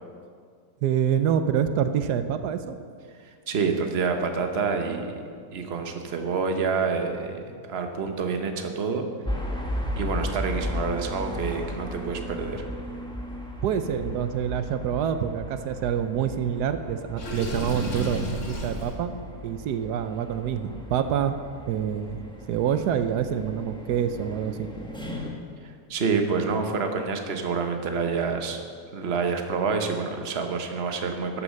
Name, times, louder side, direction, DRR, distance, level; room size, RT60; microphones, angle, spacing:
voice 1, 0.8-2.8 13.6-19.1 19.4-21.3 21.7-24.7, right 8 dB, 90° right, 10 dB, 1.3 m, -26 dB
voice 2, 3.2-5.2 5.5-9.1 9.9-12.6 25.6-28.6 28.9-31.4, right 5 dB, 45° right, 5 dB, 1.2 m, -28 dB
sound 1, 9.3-25.3, left 1 dB, 5° left, 1.4 m, -36 dB
Water / Sink (filling or washing), 17.2-18.9, equal, 50° left, 2.1 m, -32 dB
13.5 x 8.5 x 6.4 m, 2.1 s
omnidirectional pair, 1.7 m